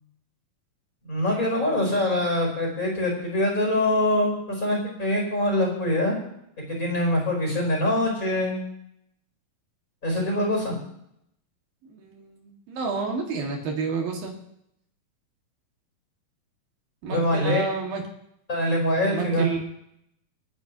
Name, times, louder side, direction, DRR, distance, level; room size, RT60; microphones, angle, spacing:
voice 1, 1.0-6.1 6.7-8.6 10.0-10.7 17.1-17.6 18.5-19.5, left 1 dB, 20° left, -2 dB, 4.6 m, -24 dB
voice 2, 11.8-14.4 17.0-18.0 19.1-19.7, right 4 dB, 75° right, 1 dB, 3.8 m, -30 dB
29.5 x 10.0 x 3.0 m, 0.75 s
omnidirectional pair, 4.2 m